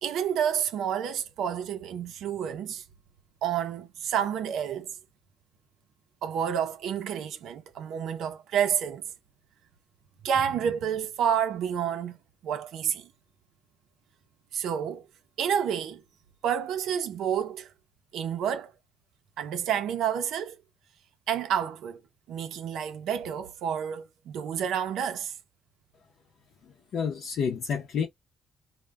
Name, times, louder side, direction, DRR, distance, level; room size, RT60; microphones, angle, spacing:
voice 1, 0.0-2.8 3.4-4.9 6.2-9.0 10.2-12.2 12.4-13.1 14.5-15.0 15.4-16.0 16.4-17.7 18.1-18.7 19.4-20.6 21.3-22.0 22.3-25.3, right 8 dB, 65° right, 0.5 m, -29 dB
voice 2, 26.6-28.1, left 6 dB, 55° left, 0.5 m, -30 dB
2.1 x 2.1 x 3.4 m
cardioid pair, 170°, 0 cm